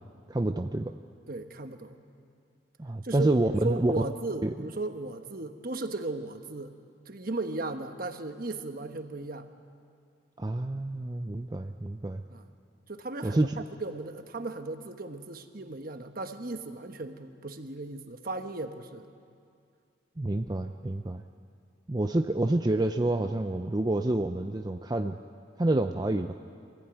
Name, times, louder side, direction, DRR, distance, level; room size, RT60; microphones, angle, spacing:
voice 1, 0.3-1.0 2.8-3.9 4.4-4.5 10.4-12.2 13.2-13.5 20.2-21.2 21.9-25.2 25.6-26.3, right 2 dB, 20° right, 6 dB, 0.5 m, -28 dB
voice 2, 1.3-2.0 3.0-6.7 7.0-9.5 12.3-12.5 12.9-19.1, right 2 dB, 50° right, 7 dB, 1.2 m, -36 dB
25.0 x 15.5 x 9.1 m, 2.3 s
head